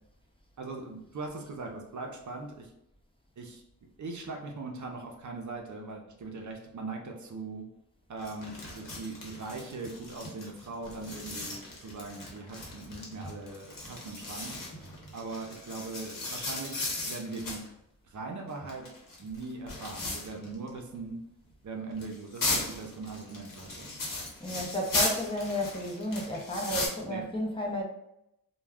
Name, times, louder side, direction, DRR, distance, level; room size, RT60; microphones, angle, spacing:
voice 1, 0.6-2.7 3.4-3.6 4.0-7.7 8.1-17.6 18.0-18.9 19.2-21.2 21.6-23.9 27.1-27.2, right 3 dB, 55° right, 1 dB, 0.6 m, -40 dB
sound 1, 8.2-17.7 18.5-20.7 20.9-21.0 21.9-26.9, left 2 dB, 65° left, 1.0 m, -36 dB
voice 2, 24.4-27.8, equal, 15° left, -2 dB, 0.7 m, -32 dB
2.3 x 2.2 x 3.3 m, 0.81 s
cardioid pair, 65°, 36 cm